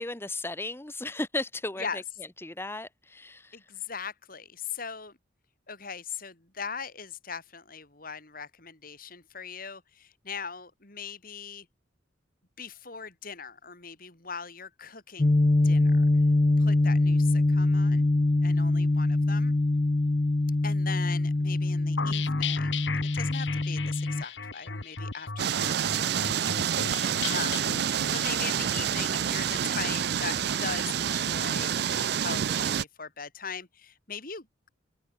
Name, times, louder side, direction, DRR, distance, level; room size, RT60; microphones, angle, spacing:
voice 1, 0.0-2.0 2.4-3.7, left 2 dB, 15° left, 1.1 m, -35 dB
voice 2, 3.5-5.2 5.7-11.7 12.6-16.1 16.6-18.1 18.4-19.6 20.6-27.7 28.1-34.7, left 6 dB, 50° left, 3.7 m, -40 dB
sound 1, 15.2-24.2, left 2 dB, 30° left, 0.5 m, -24 dB
sound 2, 22.0-31.4, left 5 dB, 75° left, 2.0 m, -37 dB
sound 3, 25.4-32.8, right 9 dB, 60° right, 0.4 m, -28 dB
head